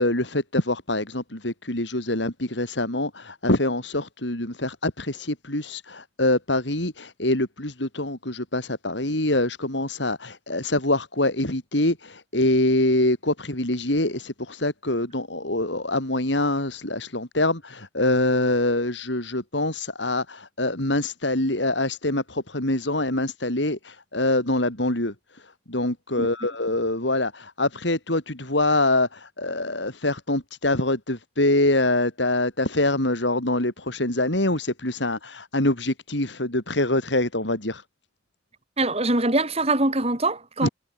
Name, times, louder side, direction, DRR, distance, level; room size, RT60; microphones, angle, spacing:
voice 1, 0.0-37.8 40.6-40.7, left 1 dB, 75° left, 5.5 m, -25 dB
voice 2, 38.8-40.7, right 2 dB, 35° right, 7.0 m, -23 dB
head